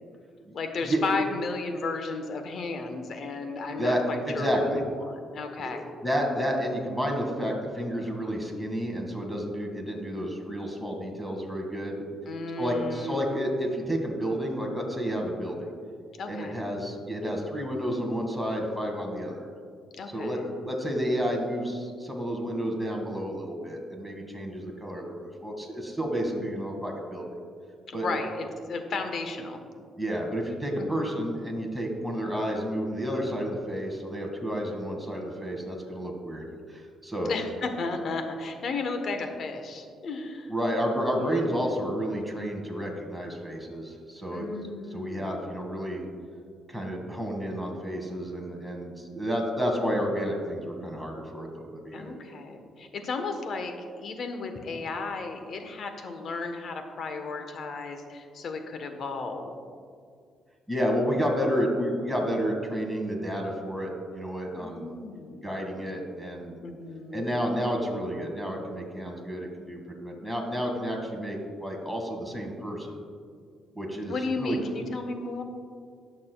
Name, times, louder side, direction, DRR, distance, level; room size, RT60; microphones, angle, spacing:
voice 1, 0.5-5.8 12.3-13.3 16.2-16.6 20.0-20.6 26.3-26.7 27.9-29.6 30.8-31.1 37.1-40.5 41.2-41.4 44.3-45.5 51.9-59.6 64.6-65.5 66.6-67.3 74.1-75.4, left 3 dB, 60° left, 6 dB, 1.1 m, -34 dB
voice 2, 3.8-4.8 5.6-5.7 6.0-12.1 12.6-15.7 16.3-19.5 20.1-20.4 20.6-27.2 27.9-28.1 30.0-37.3 40.5-44.5 44.9-46.0 46.7-52.1 60.7-64.9 65.4-66.5 67.1-73.0 73.8-74.6, equal, ahead, 1 dB, 1.9 m, -30 dB
19.5 x 6.6 x 2.3 m, 2.2 s
cardioid pair, 90°, 0 cm